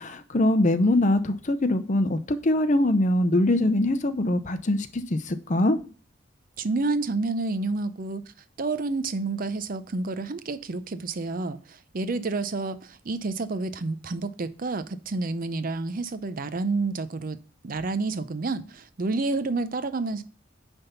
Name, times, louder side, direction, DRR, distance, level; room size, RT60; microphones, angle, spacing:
voice 1, 0.0-5.8, left 1 dB, 40° left, 0.7 m, -23 dB
voice 2, 6.6-8.2 8.6-17.4 17.6-20.2, right 3 dB, 45° right, 0.5 m, -29 dB
9.6 x 3.5 x 5.6 m
head